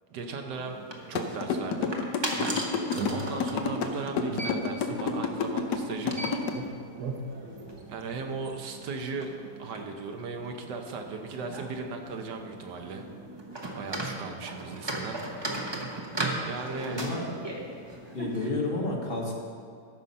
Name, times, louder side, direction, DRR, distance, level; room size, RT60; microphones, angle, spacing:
voice 1, 0.1-0.8 1.1-1.9 3.1-6.4 7.9-9.3 9.6-13.0 13.7-15.5 16.5-17.0, right 4 dB, 85° right, 4 dB, 1.6 m, -37 dB
sound 1, 0.5-18.5, right 2 dB, 20° right, 0.9 m, -38 dB
sound 2, 1.2-6.5, left 6 dB, 80° left, 1.3 m, -29 dB
sound 3, 2.4-3.8 4.3-5.7 6.0-8.6, right 3 dB, 65° right, 1.4 m, -39 dB
voice 2, 16.9-17.3 18.1-19.3, left 2 dB, 35° left, 0 dB, 1.5 m, -30 dB
14.0 x 5.8 x 5.4 m, 2.3 s
omnidirectional pair, 1.8 m